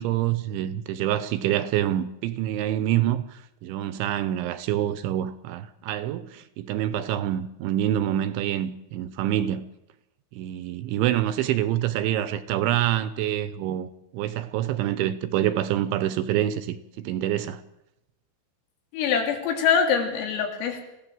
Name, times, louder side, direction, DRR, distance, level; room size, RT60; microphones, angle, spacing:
voice 1, 0.0-9.6 10.3-17.6, right 12 dB, 75° right, 3.1 m, -26 dB
voice 2, 18.9-20.8, left 7 dB, 85° left, 5.8 m, -24 dB
27.0 x 17.0 x 7.8 m
omnidirectional pair, 5.8 m